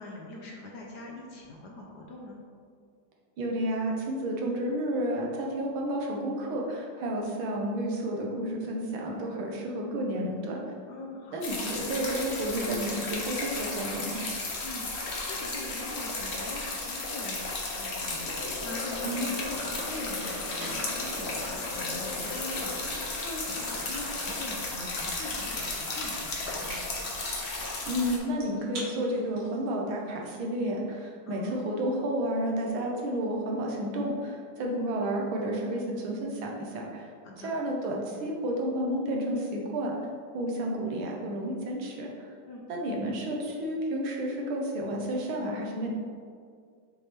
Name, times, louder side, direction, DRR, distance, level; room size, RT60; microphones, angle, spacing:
voice 1, 0.0-2.4 10.9-11.4 14.6-26.8 31.2-31.7 37.2-37.6 42.5-42.6, left 2 dB, 65° left, -2 dB, 1.1 m, -43 dB
voice 2, 3.4-10.6 11.3-14.2 19.0-19.3 27.9-37.1 37.4-40.0 40.3-42.3 42.7-45.9, right 1 dB, 75° right, -1 dB, 1.7 m, -31 dB
sound 1, 11.4-28.2, left 2 dB, 50° left, 0.8 m, -34 dB
sound 2, 17.9-23.2, left 2 dB, 90° left, 1.8 m, -40 dB
sound 3, 20.5-30.0, right 1 dB, 45° right, 1.5 m, -47 dB
6.4 x 3.3 x 4.3 m, 2.1 s
omnidirectional pair, 2.3 m